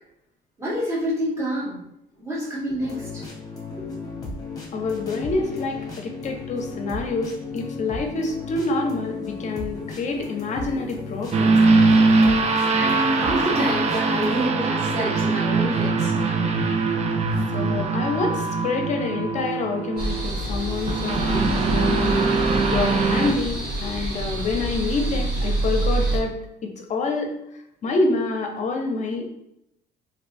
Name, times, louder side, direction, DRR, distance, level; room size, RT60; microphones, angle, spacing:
voice 1, 0.6-1.8 2.2-3.2 3.8-3.9 12.7-16.1, equal, 15° right, -7 dB, 1.4 m, -28 dB
sound 1, 2.8-14.5, left 3 dB, 20° left, 0.9 m, -35 dB
voice 2, 4.7-11.6 17.5-26.3 26.6-27.3 27.8-29.3, left 3 dB, 45° left, 3 dB, 0.6 m, -27 dB
sound 2, 11.3-23.3, right 3 dB, 40° right, 0.4 m, -22 dB
sound 3, 20.0-26.2, right 1 dB, 70° right, 1.2 m, -27 dB
3.2 x 2.8 x 2.6 m, 0.82 s
cardioid pair, 110°, 17 cm